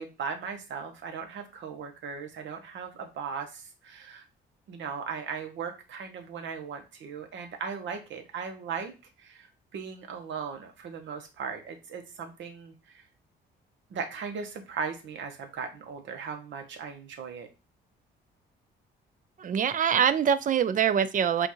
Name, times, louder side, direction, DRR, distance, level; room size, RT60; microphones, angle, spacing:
voice 1, 0.0-4.2 4.7-8.9 9.2-9.5 9.7-13.0 13.9-17.5, right 6 dB, 70° right, 1.0 m, -38 dB
voice 2, 19.4-21.5, right 8 dB, 40° right, 0.4 m, -24 dB
5.1 x 2.5 x 3.0 m
cardioid pair, 90°, 20 cm